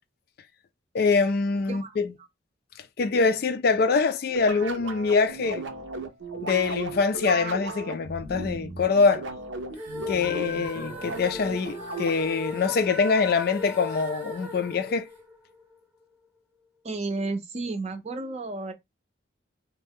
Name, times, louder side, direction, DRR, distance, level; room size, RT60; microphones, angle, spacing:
voice 1, 0.9-2.1 3.0-5.7 6.4-9.2 10.1-15.1, left 4 dB, 55° left, 0.3 m, -24 dB
sound 1, 4.3-12.4, right 3 dB, 85° right, 0.6 m, -36 dB
sound 2, 9.7-15.8, left 2 dB, 10° right, 0.8 m, -38 dB
voice 2, 16.8-18.7, right 3 dB, 35° right, 0.5 m, -32 dB
2.6 x 2.2 x 3.4 m
head